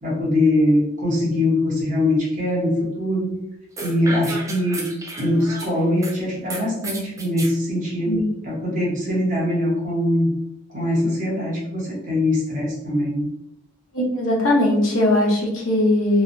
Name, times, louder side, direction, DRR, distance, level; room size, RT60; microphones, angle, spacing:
voice 1, 0.0-3.4 3.8-4.9 5.2-10.3 10.7-13.3, left 1 dB, 35° right, -4 dB, 0.9 m, -22 dB
sound 1, 3.8-6.1 6.5-7.5, right 2 dB, 15° right, 0.3 m, -33 dB
voice 2, 13.9-16.2, left 1 dB, 70° left, -3 dB, 0.9 m, -19 dB
3.1 x 2.1 x 2.5 m, 0.80 s
head